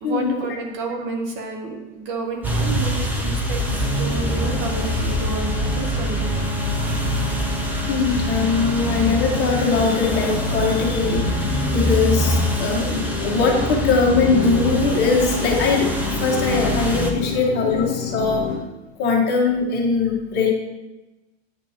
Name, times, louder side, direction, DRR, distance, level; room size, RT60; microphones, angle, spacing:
voice 1, 0.0-6.4 17.2-17.5, right 2 dB, 35° right, 3 dB, 0.8 m, -30 dB
sound 1, 2.4-17.1, equal, 5° right, 0.4 m, -25 dB
sound 2, 3.7-17.9, left 1 dB, 65° right, 2.1 m, -33 dB
sound 3, 6.5-18.6, left 5 dB, 55° left, 1.0 m, -31 dB
voice 2, 7.9-18.5 19.0-20.5, left 4 dB, 30° left, -1 dB, 1.3 m, -21 dB
9.5 x 4.3 x 2.9 m, 1.0 s
supercardioid pair, 140°, 33 cm